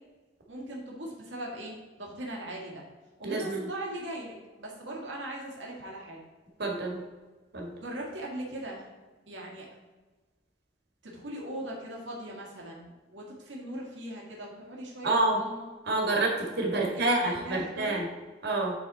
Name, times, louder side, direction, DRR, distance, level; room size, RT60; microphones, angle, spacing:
voice 1, 0.5-2.8 3.2-6.2 7.8-8.9 9.3-9.7 11.0-15.7 16.7-18.0, right 1 dB, 75° right, -2 dB, 1.9 m, -39 dB
voice 2, 3.2-3.6 6.6-7.0 7.5-7.7 15.0-15.4 15.9-16.3 16.6-18.1 18.4-18.7, right 2 dB, 60° right, -1 dB, 1.8 m, -27 dB
8.9 x 4.2 x 4.2 m, 1.3 s
head